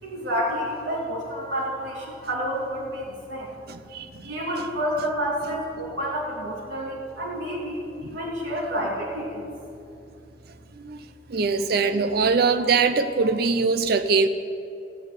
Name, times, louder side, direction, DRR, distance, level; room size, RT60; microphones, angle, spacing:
voice 1, 0.0-3.5 3.9-9.5, equal, 90° right, -6 dB, 3.2 m, -29 dB
voice 2, 3.7-4.3 10.8-11.0 11.3-14.3, right 4 dB, 55° right, 9 dB, 0.6 m, -22 dB
14.5 x 7.1 x 9.4 m, 2.7 s
head